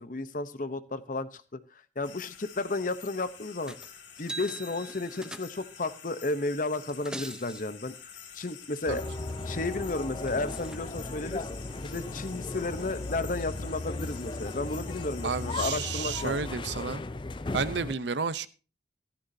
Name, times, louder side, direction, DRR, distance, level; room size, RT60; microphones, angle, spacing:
voice 1, 0.0-1.6 2.0-3.7 4.2-7.9 8.3-9.0 9.5-11.5 11.8-16.4, left 2 dB, 45° left, 13 dB, 0.8 m, -33 dB
sound 1, 2.0-16.4, left 8 dB, 80° left, 2.4 m, -48 dB
sound 2, 3.7-3.9 4.2-5.8 6.8-7.6 9.8-9.9 10.2-10.8 11.7-11.8, right 2 dB, 5° right, 0.7 m, -42 dB
sound 3, 8.9-17.9, left 2 dB, 25° left, 0.5 m, -36 dB
voice 2, 15.2-17.0 17.5-18.5, right 5 dB, 70° right, 15 dB, 0.7 m, -31 dB
15.5 x 13.0 x 2.7 m, 0.34 s
head